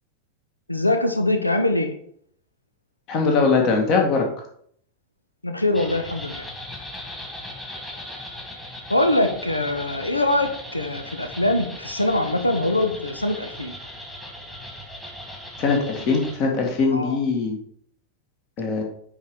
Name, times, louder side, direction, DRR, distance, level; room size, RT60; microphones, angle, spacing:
voice 1, 0.7-1.9 5.4-6.5 8.9-13.8 16.9-17.2, left 1 dB, 85° left, 7 dB, 0.7 m, -23 dB
voice 2, 3.1-4.3 15.6-17.6 18.6-18.8, left 4 dB, 40° left, 2 dB, 1.8 m, -21 dB
sound 1, 5.7-16.4, left 1 dB, 10° left, 2.1 m, -38 dB
9.3 x 4.1 x 4.7 m, 0.65 s
figure-of-eight pair, 90°, 0 cm